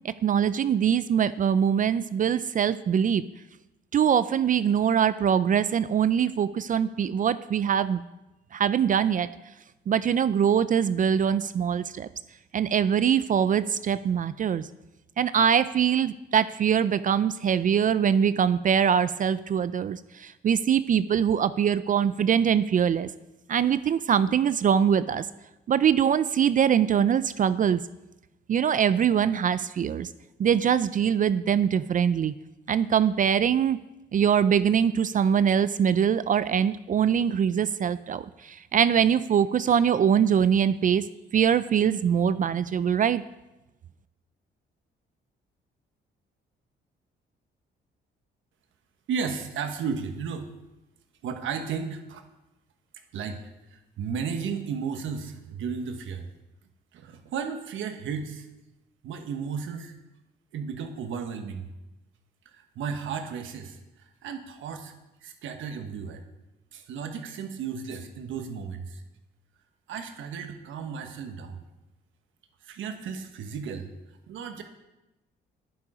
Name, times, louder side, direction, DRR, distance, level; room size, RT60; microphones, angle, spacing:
voice 1, 0.2-3.2 3.9-8.0 8.5-9.3 9.9-12.1 12.5-14.7 15.2-23.1 23.5-25.2 25.7-27.8 28.5-30.1 30.4-32.3 32.7-33.8 34.1-41.1 41.3-43.2, right 8 dB, 40° right, 15 dB, 0.4 m, -23 dB
voice 2, 49.1-50.5 51.2-52.2 53.1-53.4 53.7-56.3 56.9-58.5 59.0-59.9 60.5-61.7 62.4-63.8 64.2-64.9 65.2-66.2 66.7-69.0 69.9-71.6 72.6-73.9 74.3-74.6, right 6 dB, 80° right, 6 dB, 1.2 m, -34 dB
10.5 x 8.0 x 5.0 m, 1.0 s
cardioid pair, 90°, 20 cm